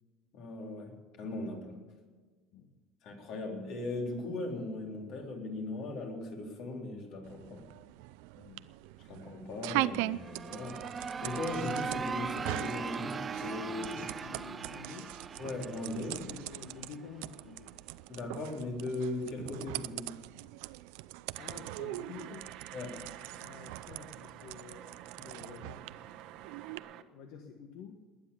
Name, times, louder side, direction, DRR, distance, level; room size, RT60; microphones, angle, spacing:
voice 1, 0.3-1.8 3.0-7.7 9.0-10.9 11.2-14.0 15.4-16.3 18.1-20.3 22.7-23.2, left 2 dB, 55° left, 1 dB, 3.8 m, -38 dB
sound 1, 7.2-26.8, right 18 dB, 80° right, 0.5 m, -41 dB
voice 2, 8.3-8.7 13.9-15.1 16.2-17.7 21.4-22.5 23.4-24.9 25.2-25.9 27.0-28.0, left 6 dB, 70° left, 4 dB, 1.5 m, -49 dB
sound 2, 10.1-16.9, right 5 dB, 20° right, 0.4 m, -39 dB
sound 3, 21.3-27.0, right 11 dB, 60° right, 1.1 m, -50 dB
20.0 x 9.8 x 7.1 m, 1.4 s
cardioid pair, 145°, 0 cm